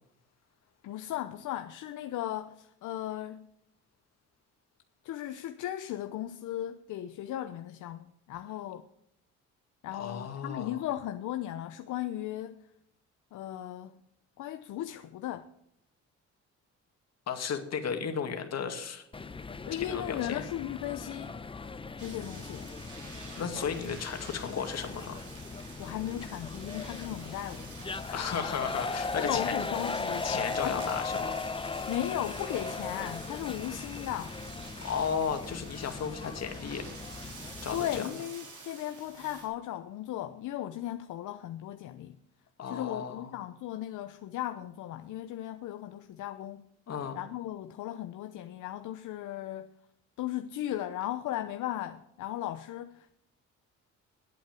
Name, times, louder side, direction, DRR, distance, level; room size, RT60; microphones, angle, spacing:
voice 1, 0.8-3.5 5.0-8.9 9.8-12.5 13.3-14.0 14.4-15.5 19.6-21.4 22.0-22.7 25.8-27.7 28.1-28.2 29.2-30.3 30.6-30.9 31.9-34.4 37.7-42.2 42.7-46.7 47.1-49.7 50.2-53.1, left 12 dB, 80° left, 0.7 m, -36 dB
voice 2, 9.9-10.8 17.3-19.0 19.8-20.4 23.4-25.2 28.1-29.5 30.2-31.4 34.8-36.8 37.6-38.1 42.6-43.3 46.9-47.2, left 7 dB, 60° left, 2.2 m, -34 dB
sound 1, 19.1-38.0, left 4 dB, 20° left, 0.7 m, -38 dB
sound 2, 22.0-39.5, right 4 dB, 80° right, 4.5 m, -48 dB
11.0 x 8.6 x 7.5 m
cardioid pair, 90°, 30 cm